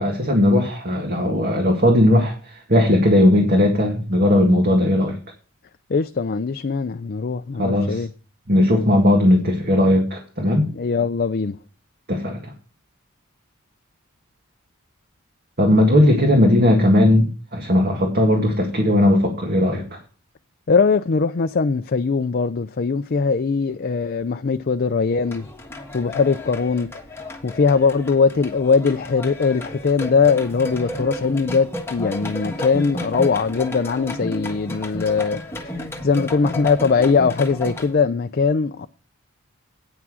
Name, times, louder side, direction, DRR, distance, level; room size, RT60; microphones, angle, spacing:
voice 1, 0.0-5.2 7.6-8.0 8.5-10.7 12.1-12.5 15.6-20.0, left 1 dB, 45° right, 1.8 m, -17 dB
voice 2, 5.9-8.1 10.7-11.6 20.7-25.5 25.9-26.9 27.4-35.4 35.6-38.9, left 5 dB, 45° left, 0.4 m, -20 dB
sound 1, 25.2-37.9, left 1 dB, 10° left, 1.4 m, -32 dB
9.3 x 6.0 x 6.2 m
head